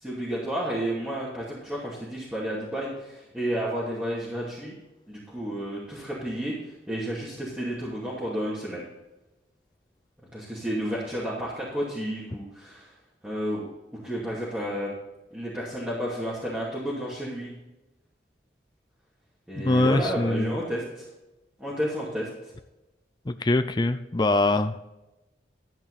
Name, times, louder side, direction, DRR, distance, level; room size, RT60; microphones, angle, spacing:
voice 1, 0.0-4.7 5.1-6.5 6.9-8.9 10.3-12.9 13.2-13.7 14.0-14.9 15.3-17.5 19.5-21.0 21.6-22.3, equal, 5° right, -8 dB, 2.5 m, -31 dB
voice 2, 19.6-20.6 23.3-24.8, left 2 dB, 25° left, 9 dB, 0.5 m, -23 dB
13.0 x 9.1 x 4.1 m, 1.0 s
head